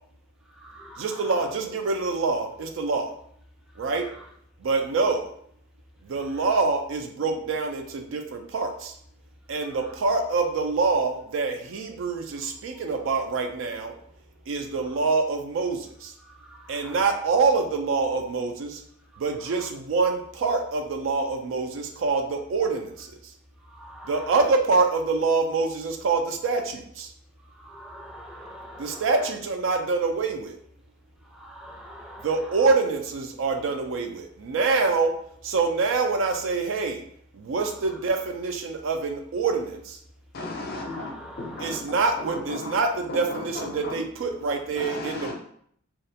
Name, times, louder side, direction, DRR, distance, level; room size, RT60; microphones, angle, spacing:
voice 1, 1.0-3.1 3.8-4.0 4.6-5.3 6.0-8.9 9.5-13.9 14.5-16.1 16.7-18.8 19.2-23.1 24.1-27.1 28.8-30.6 32.2-35.1 35.4-37.0 37.3-40.0 41.6-45.3, right 4 dB, 70° right, 4 dB, 0.4 m, -25 dB
voice 2, 27.9-29.0 31.6-32.2 40.7-41.5, equal, 5° right, -2 dB, 0.5 m, -42 dB
voice 3, 40.3-41.1 41.4-41.8 43.3-43.9 44.8-45.3, left 2 dB, 50° left, 1 dB, 0.5 m, -34 dB
2.3 x 2.1 x 2.7 m, 0.65 s
head